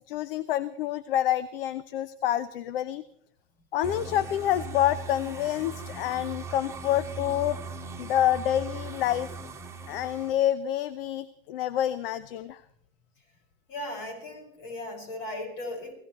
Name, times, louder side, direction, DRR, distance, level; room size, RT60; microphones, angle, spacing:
voice 1, 0.1-3.0 3.7-7.6 8.0-9.3 9.9-12.6, left 12 dB, 70° left, 17 dB, 0.7 m, -27 dB
sound 1, 3.8-10.3, right 3 dB, 10° right, 1.7 m, -39 dB
voice 2, 13.7-15.9, left 1 dB, 55° left, 2 dB, 6.2 m, -37 dB
29.0 x 16.0 x 3.1 m, 0.69 s
hypercardioid pair, 95°, 29 cm